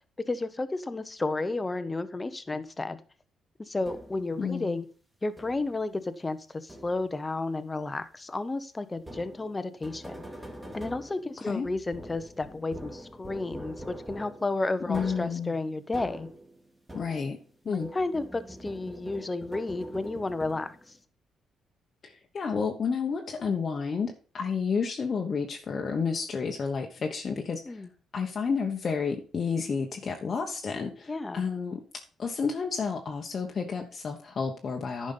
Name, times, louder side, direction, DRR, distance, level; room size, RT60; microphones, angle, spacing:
voice 1, 0.3-3.0 3.6-4.9 5.2-10.2 10.7-16.3 17.7-20.7 27.7-27.9 31.1-31.4, left 2 dB, 20° left, 12 dB, 0.9 m, -32 dB
sound 1, 3.8-4.4 5.4-5.8 6.7-7.2 9.0-17.5 17.8-21.0, right 1 dB, 10° right, 2.4 m, -44 dB
voice 2, 4.4-4.8 11.4-11.7 14.9-15.5 16.9-17.4 17.6-17.9 22.0-27.8 28.1-31.8 32.2-35.1, left 5 dB, 45° left, 2 dB, 1.1 m, -31 dB
10.5 x 5.2 x 5.4 m, 0.39 s
cardioid pair, 90°, 0 cm